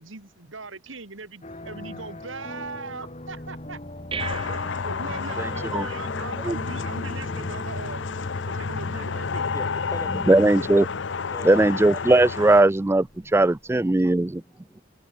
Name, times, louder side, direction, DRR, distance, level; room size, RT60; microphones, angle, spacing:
voice 1, 0.0-8.0 8.4-9.4, right 3 dB, 90° right, 2.7 m, -39 dB
sound 1, 1.4-13.5, left 1 dB, 35° left, 2.2 m, -40 dB
sound 2, 3.3-14.3, right 4 dB, 30° right, 4.6 m, -45 dB
sound 3, 4.2-12.6, left 5 dB, 70° left, 0.7 m, -30 dB
voice 2, 9.5-10.4 11.3-11.8 14.0-14.8, left 1 dB, 15° left, 2.0 m, -40 dB
voice 3, 10.3-10.9 11.4-13.1 13.3-14.4, right 2 dB, 15° right, 0.3 m, -18 dB
head